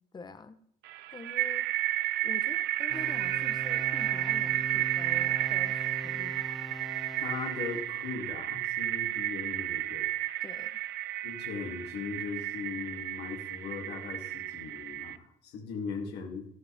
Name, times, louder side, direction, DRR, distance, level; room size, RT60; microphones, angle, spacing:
voice 1, 0.1-0.6 1.1-1.7 2.2-6.5 10.4-10.8, left 4 dB, 25° left, 10 dB, 1.1 m, -46 dB
sound 1, 0.9-15.2, right 14 dB, 85° right, 0.6 m, -32 dB
sound 2, 2.9-8.1, equal, ahead, 0.5 m, -42 dB
voice 2, 7.1-10.1 11.2-16.5, left 5 dB, 75° left, 1 dB, 3.1 m, -39 dB
13.0 x 12.5 x 3.7 m, 0.66 s
cardioid pair, 110°, 17 cm